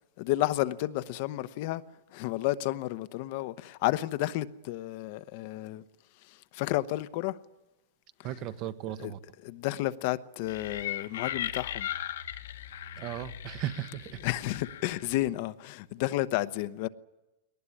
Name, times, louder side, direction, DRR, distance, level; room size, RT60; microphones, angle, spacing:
voice 1, 0.2-1.8 2.1-5.8 6.2-7.4 8.2-8.5 9.0-11.9 14.1-16.9, left 16 dB, 55° left, 0.9 m, -32 dB
voice 2, 8.2-9.2 13.0-14.3, right 12 dB, 45° right, 1.2 m, -36 dB
sound 1, 10.5-15.3, left 11 dB, 80° left, 1.5 m, -38 dB
21.0 x 19.0 x 10.0 m
hypercardioid pair, 135°, 0 cm